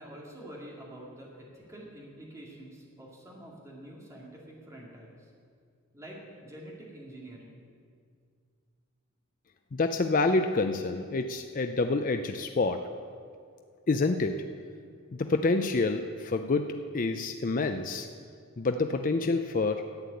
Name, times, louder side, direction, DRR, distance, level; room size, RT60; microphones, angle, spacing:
voice 1, 0.0-5.3 5.9-7.6, right 1 dB, 15° right, -3 dB, 2.3 m, -47 dB
voice 2, 9.7-12.8 13.9-14.4 15.1-18.1 18.6-19.8, left 3 dB, 35° left, 6 dB, 0.4 m, -27 dB
11.5 x 8.3 x 8.3 m, 2.2 s
head